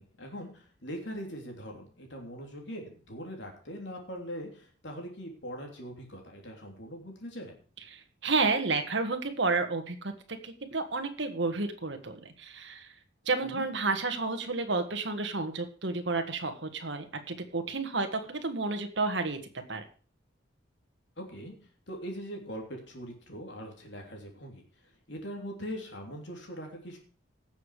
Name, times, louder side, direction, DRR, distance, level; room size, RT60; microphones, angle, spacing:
voice 1, 0.0-7.5 13.4-13.6 21.2-21.5 21.9-24.6 25.1-27.0, equal, 65° left, 2 dB, 3.3 m, -41 dB
voice 2, 7.9-12.9 13.2-19.4 19.7-19.8, right 3 dB, 65° right, 6 dB, 1.6 m, -31 dB
17.0 x 7.1 x 4.9 m, 0.41 s
head